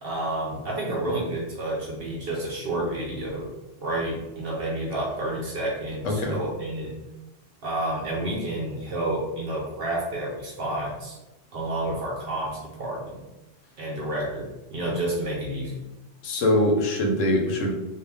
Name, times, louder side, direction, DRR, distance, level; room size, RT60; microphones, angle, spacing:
voice 1, 0.0-3.5 3.8-6.9 7.6-11.2 11.5-13.2 13.8-15.7, right 1 dB, 60° right, -2 dB, 0.6 m, -30 dB
voice 2, 16.2-17.7, left 1 dB, 90° left, 1 dB, 1.0 m, -23 dB
2.4 x 2.0 x 3.3 m, 1.0 s
omnidirectional pair, 1.3 m